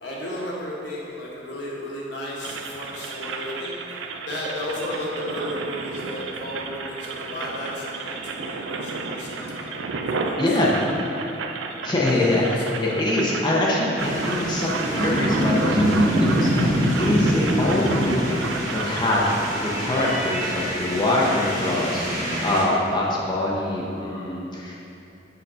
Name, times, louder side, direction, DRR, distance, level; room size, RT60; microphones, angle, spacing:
voice 1, 0.0-3.7 4.3-9.8 10.1-10.7 12.1-12.8, left 1 dB, 65° left, -5 dB, 1.5 m, -34 dB
sound 1, 2.4-19.5, right 4 dB, 85° right, 0.5 m, -32 dB
voice 2, 10.4-10.8 11.8-19.3 19.6-24.8, left 1 dB, 25° left, -4 dB, 0.7 m, -24 dB
sound 2, 14.0-22.6, equal, 20° right, 1.3 m, -25 dB
6.8 x 3.8 x 5.5 m, 2.8 s
head